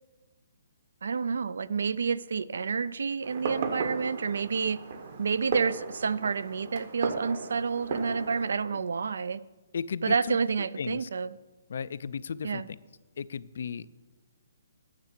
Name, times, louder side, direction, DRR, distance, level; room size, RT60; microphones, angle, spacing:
voice 1, 1.0-4.8 5.2-9.4 10.0-11.3 12.4-12.7, right 5 dB, 65° right, 18 dB, 0.4 m, -29 dB
Fireworks, 3.2-8.5, right 4 dB, 35° right, 1.0 m, -36 dB
voice 2, 9.7-10.4 10.8-11.1 11.7-12.6 13.2-14.0, left 6 dB, 50° left, 18 dB, 0.3 m, -35 dB
9.7 x 6.8 x 7.4 m, 1.2 s
hypercardioid pair, 180°, 0 cm